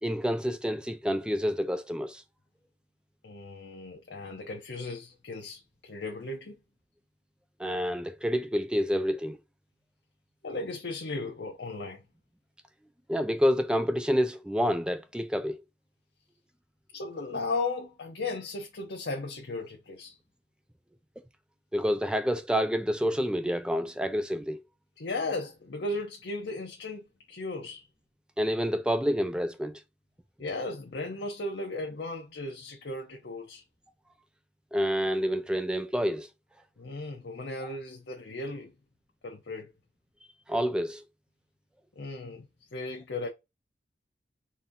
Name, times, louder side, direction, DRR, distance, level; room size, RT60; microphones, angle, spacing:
voice 1, 0.0-2.2 7.6-9.4 13.1-15.6 21.7-24.6 28.4-29.7 34.7-36.3 40.5-41.0, equal, 5° right, 0.4 m, -28 dB
voice 2, 3.2-6.6 10.4-12.0 16.9-20.2 25.0-27.9 30.4-33.6 36.8-38.7 39.2-39.7 42.0-43.3, left 2 dB, 80° left, 0.8 m, -36 dB
4.2 x 2.6 x 3.6 m
head